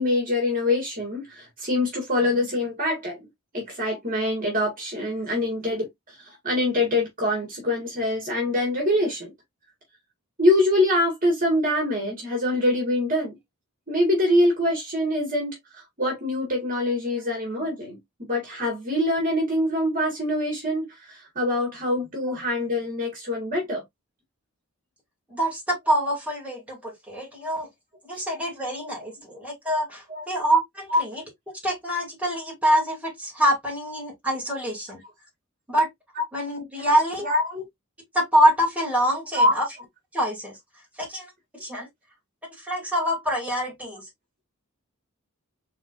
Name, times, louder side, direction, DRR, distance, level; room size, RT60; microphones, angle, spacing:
voice 1, 0.0-3.3 3.5-5.9 6.4-9.3 10.4-13.4 13.9-18.0 18.3-23.8 30.1-30.2 30.9-31.0 36.2-36.3 36.8-36.9 37.2-37.6 39.3-39.6, left 1 dB, 40° right, 2.2 m, -24 dB
voice 2, 25.3-27.7 28.0-31.2 31.6-35.0 35.7-35.9 36.3-37.3 38.1-39.6 40.1-40.6 41.0-41.3 41.6-41.9 42.6-44.1, equal, 5° right, 2.9 m, -25 dB
4.9 x 3.9 x 2.6 m
head